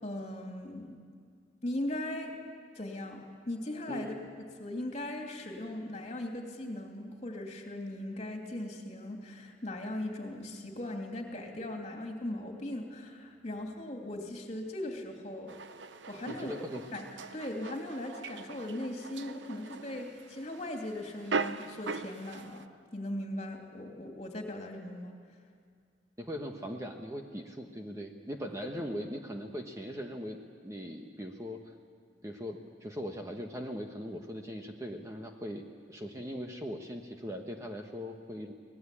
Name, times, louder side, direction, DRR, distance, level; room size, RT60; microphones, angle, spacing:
voice 1, 0.0-1.0 1.6-2.3 2.7-4.1 4.6-15.5 16.1-16.5 16.9-17.1 17.3-22.6 22.9-25.1, left 1 dB, 35° left, 2 dB, 2.9 m, -39 dB
voice 2, 3.9-4.2 16.2-16.8 26.2-30.4 30.6-31.7 32.2-35.6 35.9-38.5, equal, 15° right, 3 dB, 1.1 m, -40 dB
sound 1, 15.5-22.7, right 4 dB, 75° right, 0.8 m, -40 dB
25.0 x 18.5 x 8.5 m, 2.1 s
head